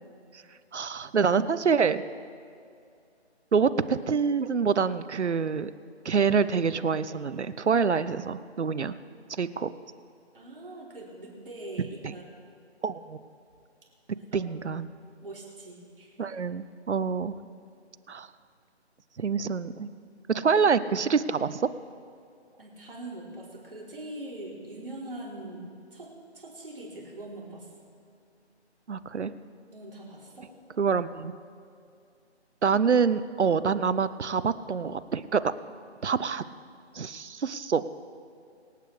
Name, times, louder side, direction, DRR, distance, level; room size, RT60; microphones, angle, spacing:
voice 1, 0.7-2.0 3.5-5.7 6.0-9.0 9.4-9.7 12.8-13.2 14.3-14.9 16.2-17.4 18.1-18.3 19.2-19.9 20.3-21.7 28.9-29.3 30.8-31.3 32.6-35.4 36.0-36.4 36.9-37.8, right 5 dB, 80° right, 14 dB, 0.7 m, -26 dB
voice 2, 10.3-12.2 14.3-14.5 15.2-16.1 22.6-25.6 25.9-27.7 29.7-30.5, right 1 dB, 50° right, -4 dB, 3.3 m, -42 dB
25.5 x 8.5 x 3.3 m, 2.4 s
figure-of-eight pair, 175°, 34 cm